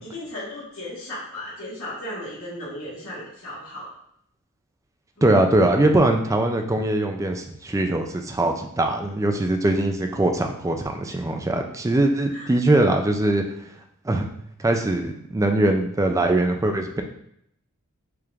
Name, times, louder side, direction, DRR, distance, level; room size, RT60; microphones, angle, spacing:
voice 1, 0.0-3.9 5.2-5.3 11.1-11.2 12.3-12.5, left 1 dB, 70° left, -8 dB, 1.5 m, -36 dB
voice 2, 5.2-13.4 14.0-14.3 14.6-17.0, right 2 dB, 15° right, 4 dB, 0.3 m, -21 dB
4.6 x 2.5 x 3.4 m, 0.73 s
head